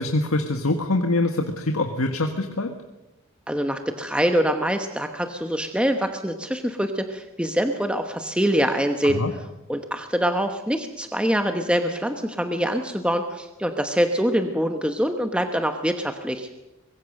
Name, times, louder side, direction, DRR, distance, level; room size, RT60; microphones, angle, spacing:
voice 1, 0.0-2.7 9.0-9.3, left 2 dB, 90° left, 5 dB, 1.6 m, -24 dB
voice 2, 3.5-9.2 9.7-16.5, equal, 5° right, 6 dB, 1.1 m, -24 dB
24.5 x 21.5 x 6.6 m, 0.97 s
head